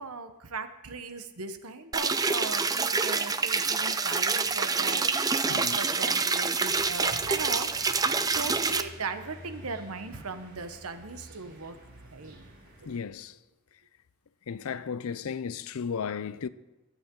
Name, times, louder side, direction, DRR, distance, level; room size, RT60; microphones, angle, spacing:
voice 1, 0.0-7.7 8.3-11.8 12.1-12.4 12.8-13.0 14.7-14.8, right 4 dB, 80° right, 1.0 m, -38 dB
sound 1, 1.9-8.8, right 4 dB, 15° right, 0.5 m, -27 dB
sound 2, 6.6-13.0, equal, 60° right, 4.6 m, -49 dB
voice 2, 12.9-13.3 14.5-16.5, left 6 dB, 70° left, 0.5 m, -34 dB
22.0 x 8.3 x 3.8 m
head